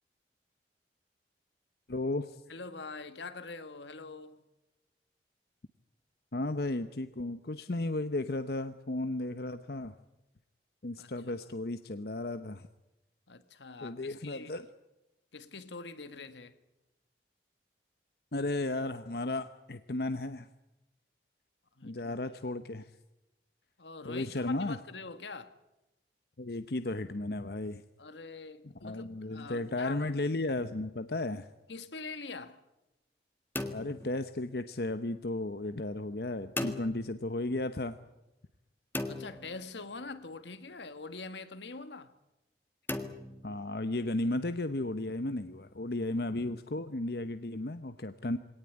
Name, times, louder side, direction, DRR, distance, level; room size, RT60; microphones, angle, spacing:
voice 1, 1.9-2.4 6.3-9.9 10.8-12.7 13.8-14.7 18.3-20.5 21.8-22.9 24.0-24.8 26.4-27.8 28.8-31.5 33.7-38.0 43.4-48.4, left 2 dB, 60° left, 0.9 m, -34 dB
voice 2, 2.5-4.4 11.0-11.1 13.3-14.5 15.3-16.6 21.8-22.2 23.8-25.5 28.0-30.0 31.7-32.6 39.0-42.1, left 4 dB, 80° left, 1.7 m, -44 dB
sound 1, 33.6-34.9 36.6-37.6 38.9-40.2 42.9-44.1, left 2 dB, 10° left, 1.5 m, -39 dB
23.0 x 18.0 x 9.7 m
head